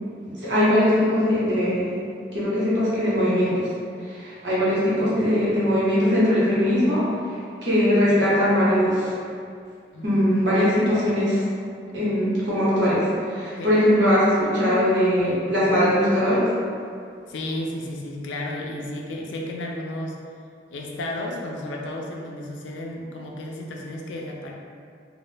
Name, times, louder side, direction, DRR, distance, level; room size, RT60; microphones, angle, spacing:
voice 1, 0.2-2.0 2.3-3.7 4.1-7.0 7.6-9.1 10.0-11.4 11.9-13.0 13.3-16.4, equal, 80° right, -9 dB, 0.9 m, -20 dB
voice 2, 9.9-10.3 13.6-13.7 17.3-20.2 20.7-24.5, left 1 dB, 85° left, 0 dB, 0.4 m, -33 dB
2.2 x 2.0 x 3.1 m, 2.3 s
head